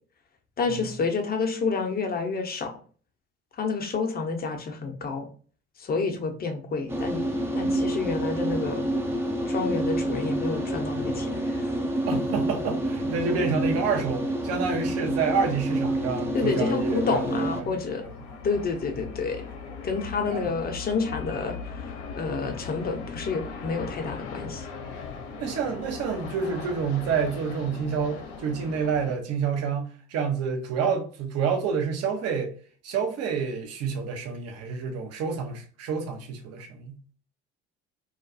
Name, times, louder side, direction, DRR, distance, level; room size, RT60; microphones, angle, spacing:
voice 1, 0.6-2.7 3.6-5.3 5.8-7.2 7.6-8.9 9.5-11.8 16.3-18.0 18.4-19.4 19.8-24.7, left 4 dB, 30° left, 0.7 m, -29 dB
sound 1, 6.9-17.6, right 1 dB, 5° right, 0.5 m, -28 dB
voice 2, 12.1-17.7 20.3-20.4 25.4-32.5 32.8-36.9, right 6 dB, 50° right, 0.7 m, -28 dB
sound 2, 16.5-29.1, left 5 dB, 65° left, 0.7 m, -39 dB
2.4 x 2.2 x 2.5 m
hypercardioid pair, 60°, 33 cm